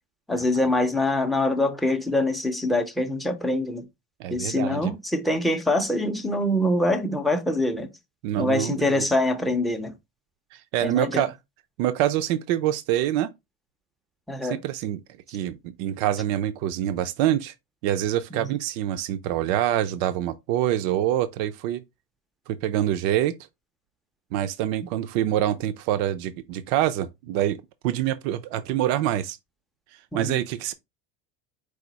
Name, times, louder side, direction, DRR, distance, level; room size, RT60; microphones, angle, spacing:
voice 1, 0.3-3.9 4.3-7.9 8.4-9.9 10.8-11.2 14.3-14.6 18.4-18.5 30.1-30.4, left 1 dB, ahead, 0.4 m, -24 dB
voice 2, 4.2-4.9 8.2-9.0 10.5-11.3 11.8-13.3 14.4-15.0 15.3-17.5 17.8-21.8 22.5-23.3 24.3-27.6 27.8-29.4 30.1-30.7, right 12 dB, 75° right, 0.6 m, -25 dB
4.9 x 2.4 x 4.0 m
cardioid pair, 155°, 34 cm